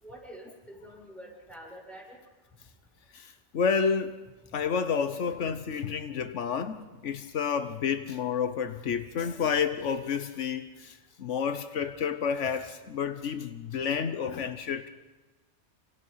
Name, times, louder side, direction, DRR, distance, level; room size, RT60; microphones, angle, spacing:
voice 1, 0.0-2.2 12.4-12.5, equal, ahead, 7.2 m, -47 dB
voice 2, 3.1-4.2 4.5-14.9, left 6 dB, 85° left, 1.3 m, -30 dB
28.0 x 26.5 x 5.7 m
omnidirectional pair, 1.2 m